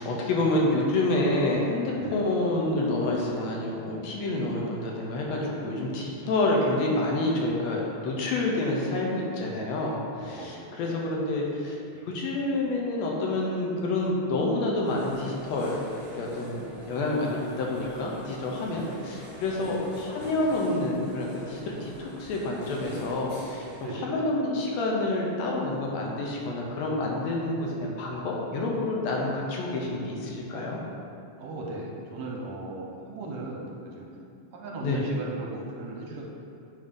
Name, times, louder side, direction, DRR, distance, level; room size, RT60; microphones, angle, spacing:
voice 1, 0.0-11.8 12.1-15.8 16.1-23.7 23.9-30.8 34.8-35.0, left 2 dB, 75° left, -2 dB, 1.8 m, -28 dB
voice 2, 2.0-2.3 10.3-10.8 18.7-19.1 19.5-19.8 23.8-24.3 31.4-34.1 34.5-36.2, right 2 dB, 75° right, -2 dB, 1.9 m, -38 dB
sound 1, 14.8-23.9, equal, 45° left, 0.7 m, -45 dB
7.1 x 2.8 x 5.1 m, 2.7 s
omnidirectional pair, 3.5 m